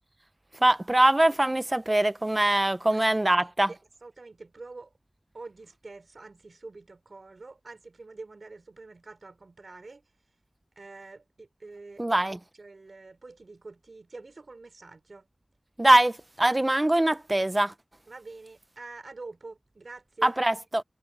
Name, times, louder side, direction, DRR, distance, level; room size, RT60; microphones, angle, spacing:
voice 1, 0.6-3.7 12.0-12.4 15.8-17.7 20.2-20.8, right 1 dB, 25° right, 1.1 m, -23 dB
voice 2, 3.7-4.9 5.3-10.0 10.7-15.3 18.1-20.4, right 3 dB, 65° right, 4.9 m, -46 dB
cardioid pair, 45°, 0 cm